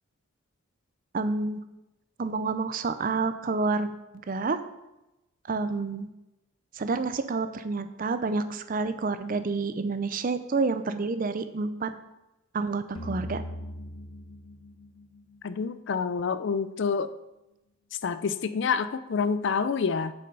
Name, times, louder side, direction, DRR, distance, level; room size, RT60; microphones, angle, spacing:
voice 1, 1.1-1.6 2.2-4.0 4.3-4.6 5.5-6.1 6.7-11.9 12.5-13.4, right 3 dB, 40° right, 11 dB, 0.5 m, -29 dB
sound 1, 13.0-16.2, equal, 80° left, 1.1 m, -40 dB
voice 2, 15.4-17.1 18.0-20.1, left 5 dB, 55° left, 13 dB, 0.4 m, -27 dB
6.9 x 6.2 x 5.4 m, 0.96 s
head